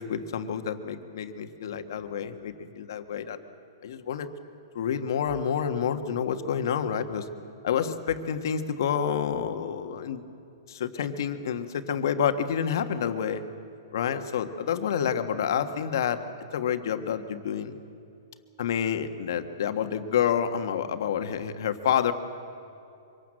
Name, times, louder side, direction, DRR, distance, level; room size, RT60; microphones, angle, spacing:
voice 1, 0.0-3.4 3.8-4.3 4.7-7.3 7.6-10.3 10.7-13.4 13.9-16.2 16.5-17.8 18.6-22.1, left 8 dB, 65° left, 8 dB, 1.5 m, -28 dB
24.5 x 18.5 x 7.7 m, 2.7 s
hypercardioid pair, 150°, 2 cm